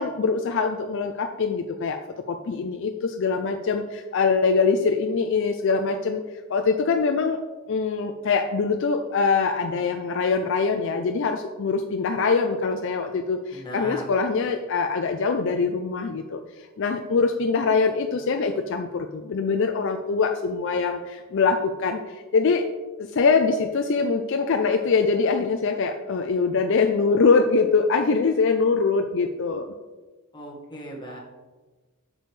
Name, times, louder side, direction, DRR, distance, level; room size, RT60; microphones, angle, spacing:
voice 1, 0.0-2.0 2.3-6.2 6.5-7.4 7.7-16.4 16.8-22.0 22.3-22.7 23.1-29.7, left 4 dB, 55° left, 5 dB, 0.4 m, -23 dB
voice 2, 13.5-14.0 30.3-31.2, equal, 20° left, -2 dB, 1.5 m, -37 dB
8.1 x 6.2 x 3.2 m, 1.2 s
head